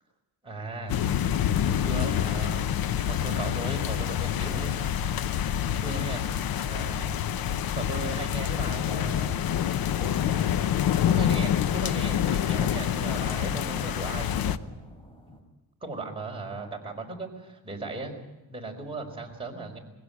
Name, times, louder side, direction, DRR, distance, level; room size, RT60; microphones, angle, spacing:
voice 1, 0.4-1.0 1.6-4.7 5.7-6.2 6.7-7.2 7.7-9.7 10.0-10.4 11.0-14.6 15.3-15.4 15.8-18.2 18.5-19.8, right 2 dB, 15° right, 0 dB, 4.8 m, -37 dB
sound 1, 0.9-14.6, left 10 dB, 65° left, 0.9 m, -27 dB
sound 2, 6.5-15.4, equal, 15° left, 3.6 m, -47 dB
22.0 x 16.5 x 9.5 m, 1.0 s
cardioid pair, 130°, 38 cm